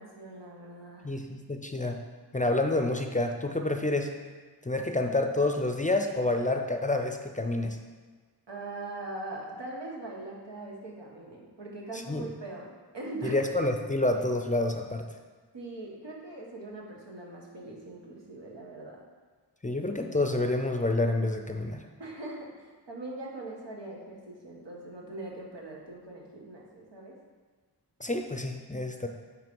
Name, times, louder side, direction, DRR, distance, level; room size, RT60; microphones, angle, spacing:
voice 1, 0.0-1.1 8.5-13.4 15.5-19.0 22.0-27.2, right 2 dB, 85° right, -2 dB, 1.5 m, -41 dB
voice 2, 1.0-2.0 2.3-4.1 4.6-7.8 12.1-12.2 13.2-15.1 19.6-21.8 28.0-29.1, left 2 dB, 20° left, 4 dB, 0.5 m, -28 dB
8.9 x 3.2 x 5.3 m, 1.5 s
wide cardioid pair, 70°, 42 cm